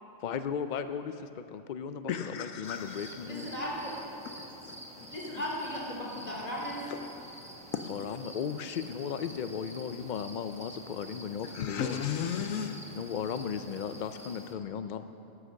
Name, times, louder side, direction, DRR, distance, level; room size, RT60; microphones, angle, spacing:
voice 1, 0.2-3.5 7.9-12.0 12.9-15.1, left 7 dB, 65° left, 10 dB, 0.4 m, -36 dB
voice 2, 2.1-3.2 4.4-5.1 6.9-7.1 7.7-8.1 11.4-12.8, left 8 dB, 80° left, 7 dB, 1.1 m, -35 dB
sound 1, 2.6-14.5, right 1 dB, 5° right, 1.1 m, -48 dB
voice 3, 3.2-3.9 5.1-6.8, equal, 30° left, -4 dB, 3.5 m, -36 dB
14.0 x 12.5 x 6.5 m, 2.8 s
omnidirectional pair, 1.4 m